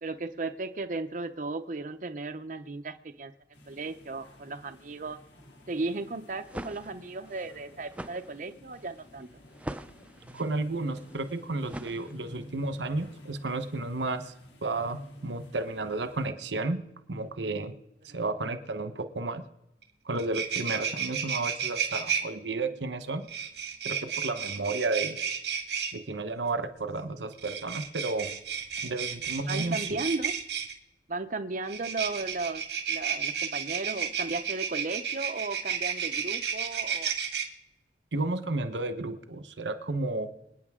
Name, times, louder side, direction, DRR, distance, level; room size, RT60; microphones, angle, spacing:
voice 1, 0.0-3.3 3.7-5.2 5.7-9.3 29.5-30.3 31.1-32.6 32.9-37.1, right 3 dB, 50° right, 6 dB, 0.7 m, -35 dB
sound 1, 3.5-16.3, equal, 80° left, 2.5 m, -52 dB
sound 2, 6.2-12.5, right 1 dB, 10° right, 0.5 m, -43 dB
voice 2, 10.3-14.3 14.6-16.8 17.1-17.7 18.1-19.4 20.1-23.2 23.8-25.2 25.9-28.3 28.8-30.0 38.1-40.4, right 2 dB, 90° right, 10 dB, 1.1 m, -32 dB
sound 3, 19.8-19.9 20.2-22.2 23.3-25.9 27.3-30.7 31.7-37.5, right 7 dB, 65° right, 2.0 m, -32 dB
26.5 x 9.1 x 3.7 m, 0.87 s
head